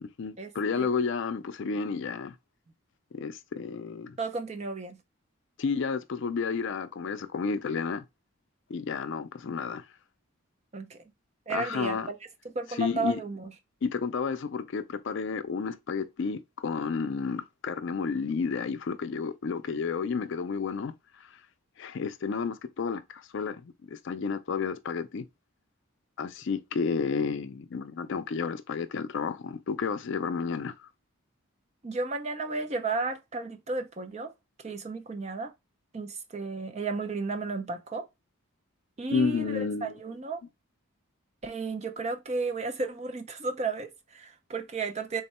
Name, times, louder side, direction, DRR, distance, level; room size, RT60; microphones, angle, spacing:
voice 1, 0.0-2.3 3.1-4.2 5.6-8.0 8.7-9.9 11.5-12.1 12.8-13.2 13.8-20.9 21.8-25.3 26.2-30.9 39.1-39.9, left 5 dB, 55° left, 0.4 m, -31 dB
voice 2, 4.2-5.0 10.7-11.0 11.5-12.2 12.4-13.5 31.8-34.3 34.6-35.5 35.9-38.1 39.0-40.4 41.4-45.2, right 3 dB, 30° right, 0.4 m, -33 dB
3.6 x 2.2 x 4.1 m
head